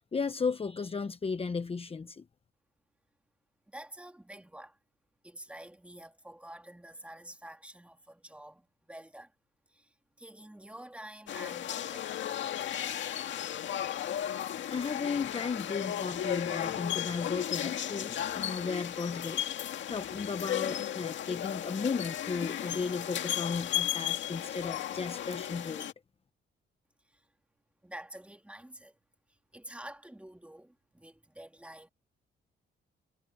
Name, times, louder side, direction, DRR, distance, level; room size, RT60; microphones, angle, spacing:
voice 1, 0.0-2.2 14.7-25.9, left 5 dB, 30° left, 1.0 m, -35 dB
voice 2, 3.7-4.8 5.2-9.3 9.7-12.4 27.1-27.3 27.8-29.0 29.5-31.9, right 1 dB, 5° right, 3.4 m, -48 dB
sound 1, 11.3-25.9, left 11 dB, 70° left, 2.0 m, -35 dB
cardioid pair, 90°, 20 cm